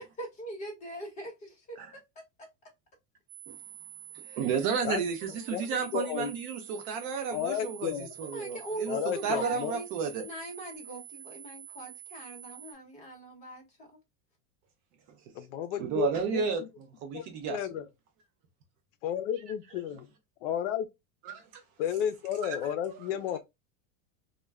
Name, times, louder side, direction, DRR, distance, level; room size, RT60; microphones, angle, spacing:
voice 1, 0.0-2.0 2.4-2.5 4.2-4.5 5.5-5.7 8.2-9.9 10.2-14.0, right 1 dB, 20° left, 0.9 m, -41 dB
sound 1, 3.3-12.7, right 10 dB, 75° right, 0.7 m, -48 dB
voice 2, 4.1-7.9 8.2-9.0 9.2-10.2 15.8-16.6 17.0-17.6 21.3-21.6 22.4-22.6, right 6 dB, 40° right, 0.5 m, -32 dB
voice 3, 5.9-6.3 7.3-8.2 8.9-9.7 15.3-16.7 17.1-17.9 19.0-20.1 20.4-20.9 21.8-23.4, left 9 dB, 75° left, 0.5 m, -32 dB
2.2 x 2.1 x 3.3 m
supercardioid pair, 170°, 36 cm